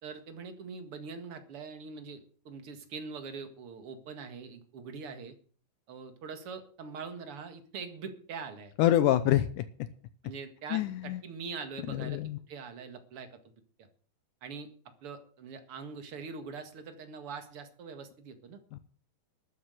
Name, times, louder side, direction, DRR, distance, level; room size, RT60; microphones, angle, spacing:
voice 1, 0.0-5.3 5.9-8.7 9.1-9.3 10.2-12.2 12.5-13.6 14.4-14.7 15.0-18.6, right 5 dB, 45° right, 8 dB, 2.4 m, -43 dB
voice 2, 8.8-9.6 10.7-11.2 11.9-12.4 18.7-18.8, left 13 dB, 75° left, 13 dB, 2.1 m, -26 dB
13.0 x 8.7 x 7.9 m, 0.44 s
omnidirectional pair, 3.9 m